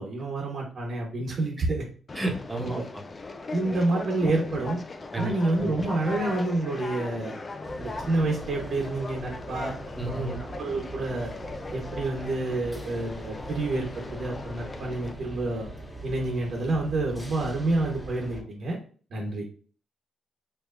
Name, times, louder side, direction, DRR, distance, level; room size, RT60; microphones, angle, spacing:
voice 1, 0.0-1.8 2.6-2.8 3.5-4.8 5.2-7.3 7.8-9.7 10.0-11.3 11.7-15.7 16.0-18.8 19.1-19.4, right 2 dB, 65° right, -2 dB, 1.2 m, -28 dB
Conversation, 2.1-15.1, left 3 dB, 35° left, 0.5 m, -39 dB
voice 2, 2.1-3.0 5.1-5.3 10.0-10.4, right 2 dB, 20° right, 1 dB, 1.2 m, -31 dB
sound 1, 7.6-18.4, right 1 dB, 5° left, 1.9 m, -41 dB
5.4 x 3.0 x 2.5 m, 0.42 s
cardioid pair, 75°, 0 cm